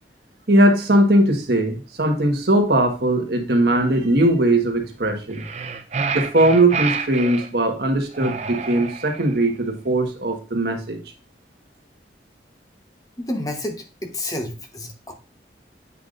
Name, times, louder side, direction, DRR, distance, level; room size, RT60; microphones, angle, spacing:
voice 1, 0.5-5.4 6.1-11.0, right 1 dB, 65° right, 3 dB, 1.5 m, -19 dB
sound 1, 5.3-7.5 8.1-9.4, right 5 dB, 40° right, 0.6 m, -28 dB
voice 2, 13.2-15.1, left 1 dB, 20° left, 5 dB, 1.0 m, -30 dB
8.3 x 5.8 x 2.5 m, 0.33 s
head